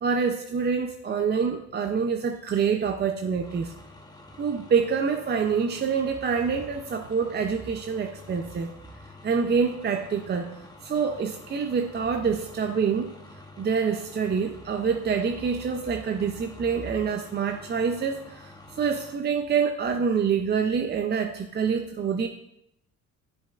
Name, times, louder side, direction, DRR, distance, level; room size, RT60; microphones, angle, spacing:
voice 1, 0.0-3.7 4.4-8.7 9.2-10.5 10.8-13.1 13.6-18.5 18.8-22.3, right 6 dB, 35° right, 5 dB, 0.5 m, -26 dB
sound 1, 3.4-19.1, left 2 dB, 15° left, 1.0 m, -48 dB
10.0 x 5.3 x 2.4 m, 0.78 s
cardioid pair, 90°, 30 cm